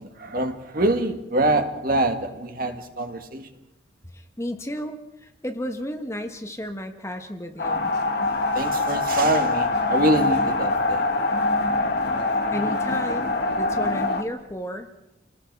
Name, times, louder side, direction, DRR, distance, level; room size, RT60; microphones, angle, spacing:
voice 1, 0.0-3.5 8.6-11.0 11.5-11.6, right 1 dB, 45° right, 1.9 m, -25 dB
voice 2, 4.1-7.9 12.5-14.9, equal, 15° left, 1.3 m, -33 dB
sound 1, 7.6-14.2, left 2 dB, 55° left, 1.8 m, -24 dB
30.0 x 19.5 x 4.8 m
head